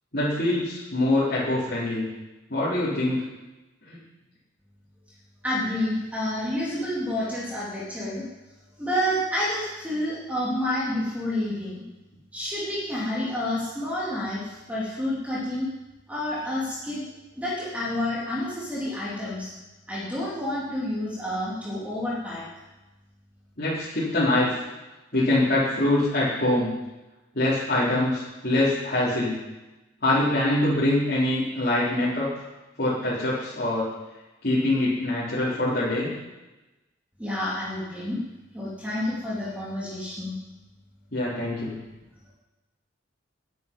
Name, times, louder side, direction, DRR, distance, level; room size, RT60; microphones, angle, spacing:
voice 1, 0.1-2.1 2.5-3.3 3.9-4.0 23.6-24.5 25.1-26.7 27.3-29.4 30.0-32.5 32.8-33.9 34.4-36.1 41.1-41.7, left 1 dB, 55° left, -10 dB, 4.0 m, -24 dB
voice 2, 5.4-8.2 8.8-11.8 12.3-15.7 16.1-17.1 17.4-19.5 19.9-22.4 37.2-38.2 38.5-40.3, left 1 dB, 10° right, -7 dB, 3.1 m, -29 dB
19.0 x 9.5 x 5.4 m, 1.1 s
head